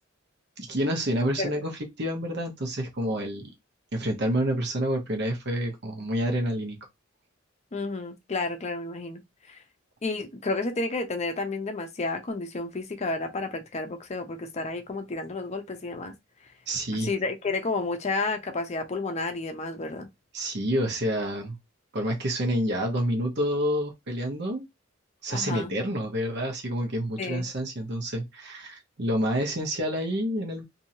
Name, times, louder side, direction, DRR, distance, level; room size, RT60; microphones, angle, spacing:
voice 1, 0.6-3.5 3.9-6.8 16.7-17.1 20.3-21.6 21.9-24.6 25.2-30.6, equal, 60° right, 1.0 m, -28 dB
voice 2, 7.7-9.2 9.5-9.6 10.0-16.1 16.9-20.1 25.3-25.7 27.2-27.4, left 3 dB, 35° left, 0.5 m, -31 dB
3.0 x 2.7 x 2.6 m
head